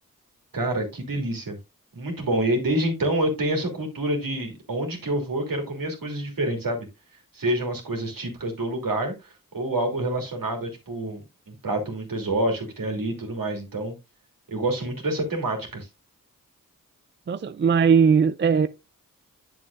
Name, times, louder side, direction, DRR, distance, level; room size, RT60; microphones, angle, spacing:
voice 1, 0.5-1.6 1.9-6.9 7.3-11.2 11.5-13.9 14.5-15.9, right 1 dB, 70° right, 2.8 m, -27 dB
voice 2, 17.3-18.7, right 6 dB, 35° right, 0.4 m, -19 dB
8.7 x 7.1 x 2.5 m
cardioid pair, 50°, 35 cm